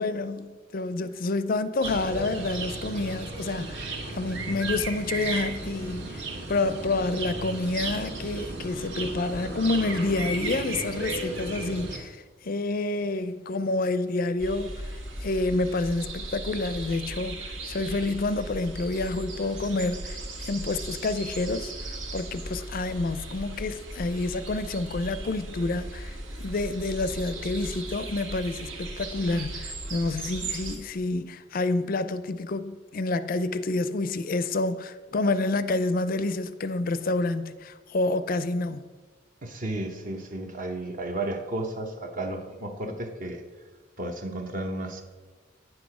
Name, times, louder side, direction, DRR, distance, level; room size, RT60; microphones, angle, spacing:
voice 1, 0.0-6.2 6.5-15.0 15.2-38.8, left 2 dB, 45° left, 0.4 m, -28 dB
sound 1, 1.8-12.0, right 3 dB, 65° right, 1.5 m, -34 dB
sound 2, 14.4-30.8, right 2 dB, 80° right, 1.6 m, -37 dB
voice 2, 39.4-43.4 44.0-45.0, right 1 dB, 40° right, 0.8 m, -33 dB
9.6 x 6.2 x 4.8 m
head